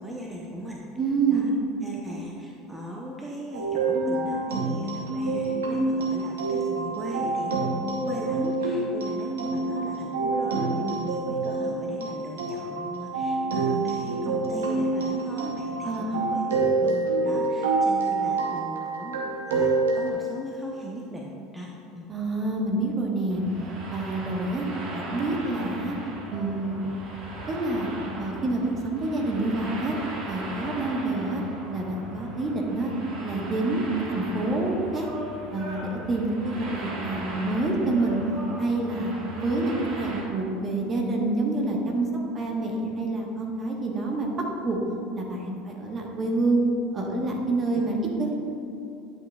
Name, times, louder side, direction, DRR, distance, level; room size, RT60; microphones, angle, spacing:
voice 1, 0.0-0.8 1.3-1.5 1.8-22.1 47.7-47.8, equal, 10° right, -3 dB, 0.9 m, -38 dB
voice 2, 1.0-1.5 15.8-16.2 22.1-23.4 23.9-24.7 24.9-26.0 26.3-26.8 27.5-27.9 28.2-30.0 30.3-31.4 31.7-32.9 33.2-35.1 35.5-38.2 38.6-42.1 42.3-44.3 44.6-44.8 45.1-46.6 46.9-48.3, right 2 dB, 35° right, 0 dB, 1.3 m, -27 dB
sound 1, 3.5-20.1, right 3 dB, 80° right, 1.0 m, -27 dB
sound 2, 23.3-40.2, right 2 dB, 50° right, 1.5 m, -38 dB
10.5 x 6.2 x 2.4 m, 2.8 s
figure-of-eight pair, 70°, 0 cm